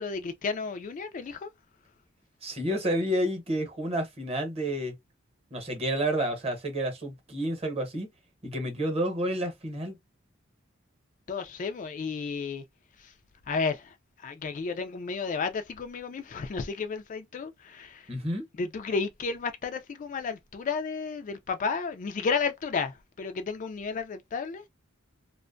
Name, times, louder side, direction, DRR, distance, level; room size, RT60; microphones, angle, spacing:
voice 1, 0.0-1.5 11.3-12.6 13.0-13.1 13.5-13.9 14.2-18.1 18.6-24.6, left 5 dB, 40° left, 0.3 m, -32 dB
voice 2, 2.4-4.9 5.5-8.1 8.4-10.0 18.1-18.4, right 1 dB, 30° right, 0.8 m, -30 dB
2.5 x 2.1 x 2.5 m
head